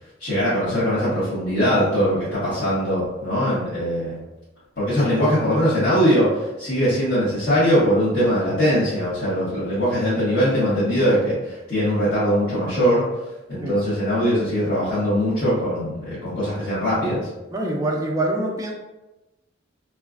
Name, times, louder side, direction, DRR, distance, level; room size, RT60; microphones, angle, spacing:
voice 1, 0.2-4.2 4.8-13.0 13.5-17.3, equal, 50° left, -15 dB, 1.3 m, -21 dB
voice 2, 17.5-18.7, right 1 dB, 20° right, 0 dB, 0.4 m, -24 dB
3.1 x 2.3 x 2.4 m, 1.0 s
head